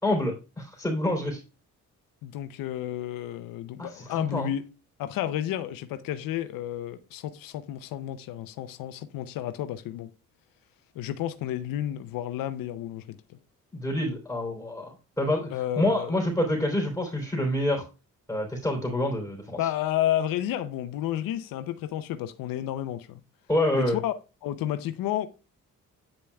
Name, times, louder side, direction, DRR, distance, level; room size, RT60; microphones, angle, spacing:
voice 1, 0.0-1.4 3.8-4.5 13.7-15.5 15.8-17.8 18.3-19.6 23.5-24.0, left 1 dB, 5° left, 3.3 m, -27 dB
voice 2, 2.2-4.6 5.0-10.1 11.0-13.4 15.5-16.2 19.6-23.2 23.7-24.1 24.4-25.3, left 12 dB, 85° left, 0.6 m, -31 dB
9.1 x 6.9 x 2.3 m
cardioid pair, 70°, 33 cm